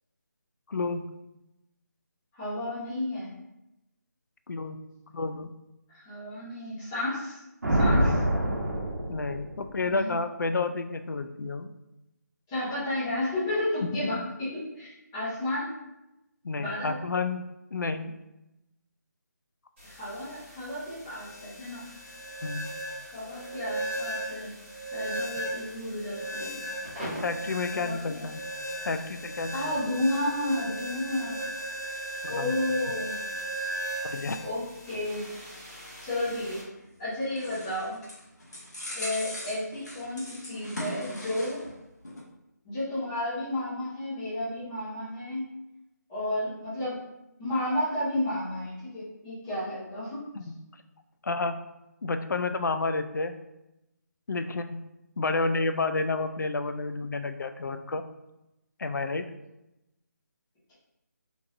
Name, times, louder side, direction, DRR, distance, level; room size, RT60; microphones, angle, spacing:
voice 1, 0.7-1.1 4.5-4.8 5.1-5.5 8.0-8.2 9.1-11.7 13.9-14.2 16.4-18.1 22.4-22.7 27.2-28.4 28.8-29.7 32.2-32.5 34.0-34.4 50.4-50.6 51.2-51.6 52.0-53.4 54.3-54.8 55.2-58.0 58.8-59.3, left 3 dB, 85° left, 8 dB, 0.4 m, -30 dB
voice 2, 2.3-3.3 5.9-7.4 7.7-8.2 9.9-10.2 12.5-15.8 16.6-16.9 19.8-21.8 23.1-24.5 24.9-26.6 27.7-28.3 29.5-31.4 32.3-33.2 34.4-35.2 36.0-36.6 37.0-38.0 38.9-41.6 42.6-45.5 46.1-47.0 47.4-50.2, left 1 dB, 10° left, -14 dB, 0.9 m, -32 dB
Thunder, 7.6-9.8, right 1 dB, 80° right, 0.9 m, -26 dB
sound 1, 19.8-36.6, right 1 dB, 10° right, 1.2 m, -37 dB
sound 2, 36.8-41.8 42.0-42.2, left 1 dB, 65° left, 1.3 m, -40 dB
3.5 x 3.1 x 2.5 m, 0.92 s
figure-of-eight pair, 175°, 10 cm